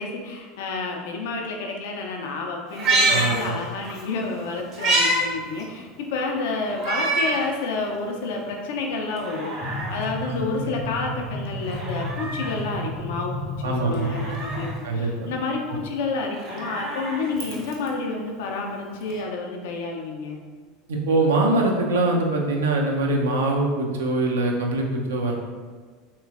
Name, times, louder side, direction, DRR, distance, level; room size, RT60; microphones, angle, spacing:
voice 1, 0.0-20.4, left 3 dB, 70° left, 1 dB, 0.4 m, -30 dB
Meow, 2.7-4.0 4.4-5.2 5.6-5.7 6.7-7.4 7.9-8.0 9.0-10.0 11.6-12.6 13.9-14.7 16.2-17.9 19.1-19.2, right 2 dB, 55° right, 0.8 m, -26 dB
voice 2, 3.1-3.5 13.6-14.1 14.8-15.3 20.9-25.3, right 2 dB, 80° right, 0 dB, 0.5 m, -23 dB
sound 1, 9.6-14.8, left 1 dB, 15° left, 0.5 m, -32 dB
3.1 x 3.0 x 2.4 m, 1.5 s
hypercardioid pair, 80°, 0 cm